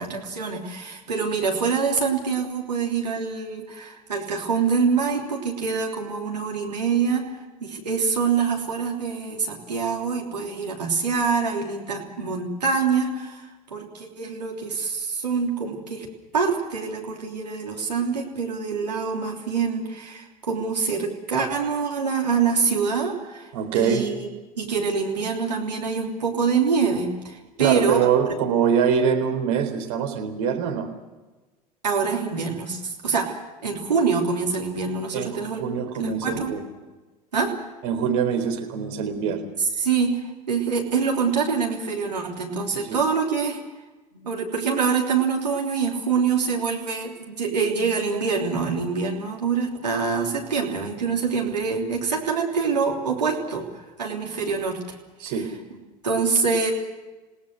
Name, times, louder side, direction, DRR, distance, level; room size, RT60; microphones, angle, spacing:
voice 1, 0.0-7.3 7.6-16.1 16.3-23.5 23.7-24.3 24.6-28.1 31.8-35.6 35.9-36.6 37.3-37.5 39.6-40.2 40.5-43.6 44.1-54.8 55.2-55.4 56.0-56.7, right 5 dB, 80° right, -1 dB, 3.2 m, -25 dB
voice 2, 23.5-24.1 27.6-30.9 35.1-36.6 37.8-39.4 42.7-43.0 55.2-55.5, right 7 dB, 60° right, 4 dB, 4.0 m, -24 dB
29.0 x 18.5 x 6.5 m, 1.2 s
figure-of-eight pair, 70°, 21 cm